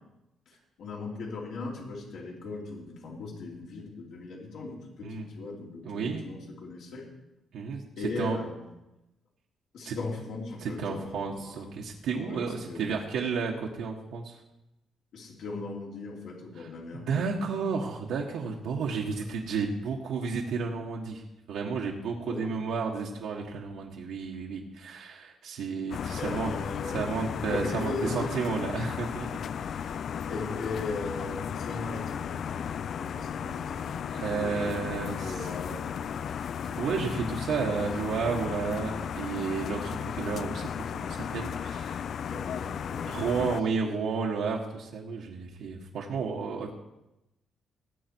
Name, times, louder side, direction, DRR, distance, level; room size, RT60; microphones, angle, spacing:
voice 1, 0.5-5.1 5.4-7.0 8.0-8.6 9.7-11.7 12.2-13.0 15.1-17.1 22.2-22.6 26.1-27.1 27.5-28.3 30.3-36.0 42.3-43.8, left 3 dB, 80° left, -2 dB, 3.0 m, -38 dB
voice 2, 5.8-6.3 7.5-7.8 8.2-8.4 9.8-9.9 10.6-14.4 16.6-16.7 16.9-21.2 21.5-26.5 26.9-29.4 29.6-30.0 34.1-35.5 36.7-40.7 40.9-42.1 43.1-46.7, right 5 dB, 85° right, -1 dB, 1.5 m, -32 dB
sound 1, 25.9-43.6, left 8 dB, 55° left, 0.3 m, -35 dB
18.5 x 8.2 x 4.6 m, 0.93 s
cardioid pair, 135°, 0 cm